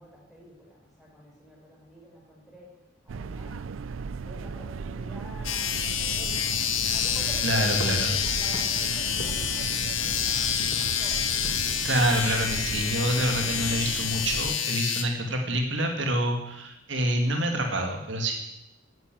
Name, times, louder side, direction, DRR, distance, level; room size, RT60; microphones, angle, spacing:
voice 1, 0.0-2.7 3.0-3.7 4.2-6.6 6.9-7.6 7.9-10.5 10.8-11.3, equal, ahead, -5 dB, 5.7 m, -48 dB
sound 1, 3.1-14.6, right 5 dB, 90° right, 0.4 m, -36 dB
sound 2, 5.4-15.0, left 9 dB, 85° left, 1.5 m, -28 dB
sound 3, 6.9-11.9, left 1 dB, 65° left, 2.0 m, -43 dB
voice 2, 7.4-8.1 11.8-18.3, right 1 dB, 70° right, 3 dB, 2.1 m, -27 dB
11.5 x 10.0 x 9.1 m, 0.86 s
head